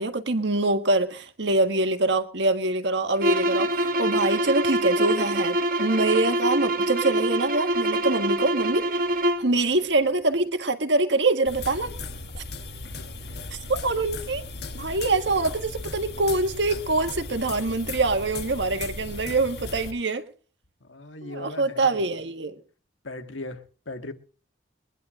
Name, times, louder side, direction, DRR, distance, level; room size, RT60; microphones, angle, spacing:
voice 1, 0.0-8.9 9.4-11.9 12.4-12.5 13.5-14.4 14.7-20.3 21.2-22.6, right 2 dB, 70° right, 1.6 m, -24 dB
sound 1, 3.2-9.5, right 1 dB, 45° right, 1.5 m, -25 dB
sound 2, 11.4-19.9, left 3 dB, 55° left, 1.5 m, -37 dB
voice 2, 20.8-22.1 23.0-24.1, left 2 dB, 90° left, 1.8 m, -38 dB
22.5 x 11.0 x 3.8 m
head